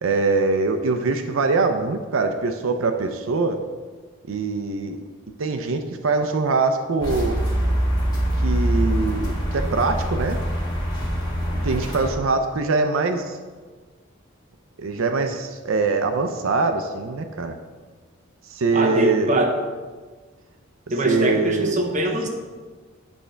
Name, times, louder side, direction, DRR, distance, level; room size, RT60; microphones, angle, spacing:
voice 1, 0.0-3.6 4.3-5.0 5.4-7.4 8.4-10.4 11.6-13.4 14.8-17.6 18.5-19.4 21.0-21.9, right 3 dB, 75° right, 7 dB, 0.5 m, -23 dB
sound 1, 7.0-12.1, equal, 20° left, 1.4 m, -24 dB
voice 2, 18.7-19.6 20.9-22.3, right 1 dB, 35° right, 2 dB, 0.9 m, -23 dB
8.9 x 3.3 x 5.7 m, 1.4 s
head